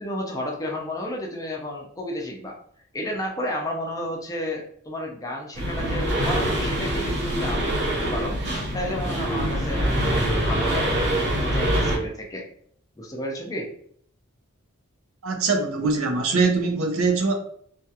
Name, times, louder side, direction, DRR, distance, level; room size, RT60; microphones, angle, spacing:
voice 1, 0.0-2.6 2.9-11.1 11.4-12.5 13.0-13.7, left 1 dB, 15° left, -1 dB, 0.5 m, -32 dB
sound 1, 5.5-12.0, right 1 dB, 55° right, 0.9 m, -24 dB
voice 2, 15.2-17.3, right 4 dB, 80° right, 4 dB, 0.5 m, -22 dB
2.3 x 2.3 x 2.7 m, 0.63 s
head